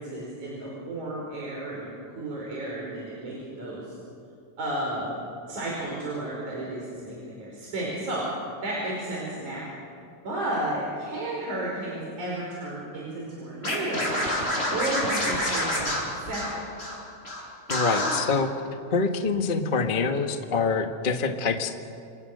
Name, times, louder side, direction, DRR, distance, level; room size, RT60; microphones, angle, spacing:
voice 1, 0.0-4.0 4.6-5.1 5.5-8.3 8.6-9.6 10.2-16.6, right 1 dB, 85° right, -4 dB, 6.4 m, -33 dB
Scratching (performance technique), 13.6-17.0 17.2-17.4 17.7-18.2, left 1 dB, 20° left, 7.2 m, -27 dB
voice 2, 17.7-18.5 18.9-21.7, left 4 dB, 35° left, 5 dB, 0.8 m, -25 dB
29.5 x 27.5 x 6.8 m, 2.4 s
omnidirectional pair, 3.3 m